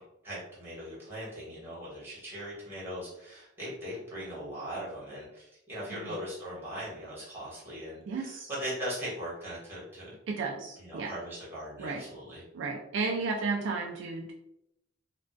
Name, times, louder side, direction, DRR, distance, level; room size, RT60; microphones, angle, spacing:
voice 1, 0.2-10.1 10.8-12.4, equal, 10° right, -8 dB, 1.1 m, -39 dB
voice 2, 8.1-8.5 10.3-11.1 11.8-12.0 12.5-14.3, right 4 dB, 65° right, 0 dB, 0.3 m, -33 dB
2.3 x 2.2 x 2.3 m, 0.81 s
head